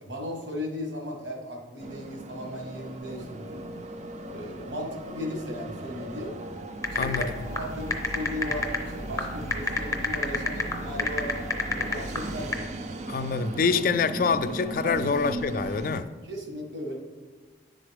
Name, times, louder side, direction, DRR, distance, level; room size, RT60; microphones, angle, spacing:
voice 1, 0.0-3.6 4.3-6.3 6.9-11.3 11.7-12.9 14.8-15.1 16.2-17.0, left 1 dB, 90° right, 1.5 m, -36 dB
sound 1, 1.8-16.0, right 2 dB, 40° right, 0.4 m, -38 dB
sound 2, 6.8-12.5, left 2 dB, 20° left, 0.7 m, -28 dB
voice 2, 6.9-7.3 13.1-16.1, left 5 dB, 50° left, 0.3 m, -26 dB
10.0 x 3.9 x 3.4 m
head